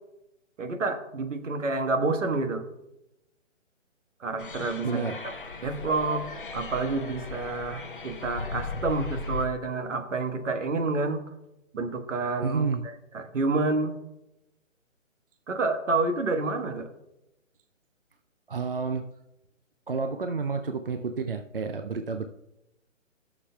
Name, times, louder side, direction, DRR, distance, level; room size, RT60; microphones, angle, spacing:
voice 1, 0.6-2.6 4.2-5.3 5.6-6.3 6.5-11.2 11.7-13.9 15.5-16.9, right 3 dB, 75° right, 7 dB, 1.3 m, -29 dB
sound 1, 4.4-9.5, left 4 dB, 45° left, 0.7 m, -37 dB
voice 2, 4.8-5.2 12.4-12.8 18.5-19.1 19.9-22.3, right 4 dB, 50° right, 6 dB, 0.4 m, -30 dB
20.0 x 6.7 x 2.2 m, 0.90 s
hypercardioid pair, 175°, 38 cm